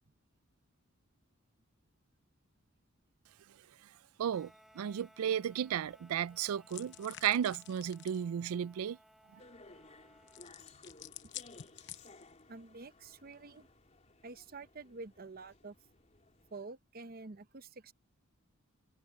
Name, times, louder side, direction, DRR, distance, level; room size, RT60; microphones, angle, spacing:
voice 1, 4.2-9.0 9.3-9.4, right 9 dB, 80° right, 0.3 m, -34 dB
sound 1, 4.3-10.5, equal, ahead, 2.3 m, -63 dB
sound 2, 6.7-8.2 10.3-12.4, left 12 dB, 55° left, 0.8 m, -50 dB
sound 3, 9.4-16.5, left 2 dB, 30° left, 3.4 m, -59 dB
voice 2, 12.5-13.7 14.2-15.8 16.5-17.9, right 3 dB, 45° right, 0.8 m, -48 dB
head